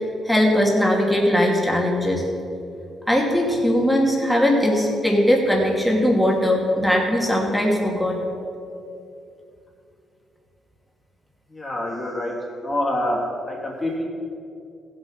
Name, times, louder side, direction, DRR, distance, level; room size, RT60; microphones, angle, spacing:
voice 1, 0.2-2.2 3.1-8.2, equal, ahead, -2 dB, 2.5 m, -20 dB
voice 2, 11.5-13.2 13.5-14.0, left 1 dB, 25° left, -3 dB, 2.9 m, -26 dB
15.5 x 7.9 x 5.7 m, 2.7 s
cardioid pair, 90°, 0 cm